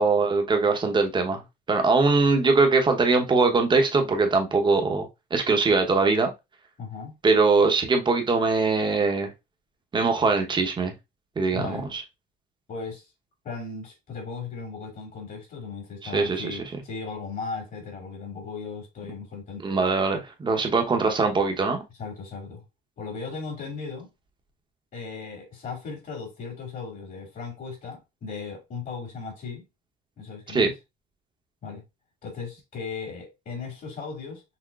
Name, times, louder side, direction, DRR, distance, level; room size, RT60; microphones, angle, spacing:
voice 1, 0.0-1.4 1.7-5.1 5.3-6.3 7.2-9.3 9.9-10.9 11.4-12.0 16.0-16.6 19.6-21.8 30.5-30.7, right 4 dB, 30° right, 0.8 m, -22 dB
voice 2, 6.8-7.2 11.5-11.9 12.7-13.1 13.4-19.6 22.0-22.6 23.0-24.1 24.9-29.6 30.2-30.7 31.6-31.8 32.2-34.4, left 4 dB, 55° left, 2.3 m, -37 dB
5.9 x 2.1 x 2.3 m
cardioid pair, 110°, 17 cm